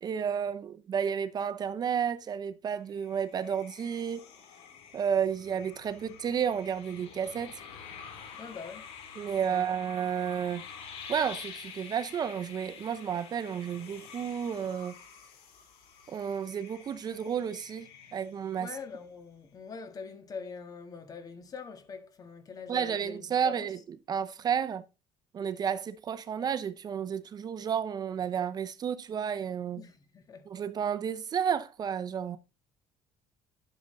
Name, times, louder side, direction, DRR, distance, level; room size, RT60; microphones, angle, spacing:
voice 1, 0.0-4.2 4.9-7.5 9.2-10.6 11.1-15.0 16.1-18.7 22.7-23.8 24.1-24.8 25.3-29.8 30.5-32.4, right 8 dB, 40° right, 0.7 m, -31 dB
sound 1, 2.9-19.2, left 6 dB, 70° left, 2.9 m, -48 dB
voice 2, 8.3-8.9 9.5-9.7 18.6-23.7 29.8-30.5, left 5 dB, 35° left, 1.9 m, -44 dB
11.5 x 6.8 x 3.9 m
cardioid pair, 125°, 11 cm